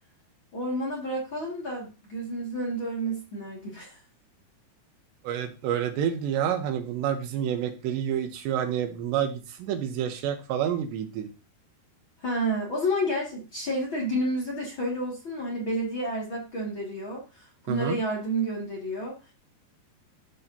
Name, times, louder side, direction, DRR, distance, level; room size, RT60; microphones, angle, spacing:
voice 1, 0.5-4.0 12.2-19.2, right 1 dB, 35° left, -3 dB, 2.3 m, -30 dB
voice 2, 5.3-11.3 17.7-18.0, right 9 dB, 85° right, 6 dB, 3.3 m, -28 dB
13.5 x 5.4 x 2.8 m, 0.31 s
omnidirectional pair, 4.9 m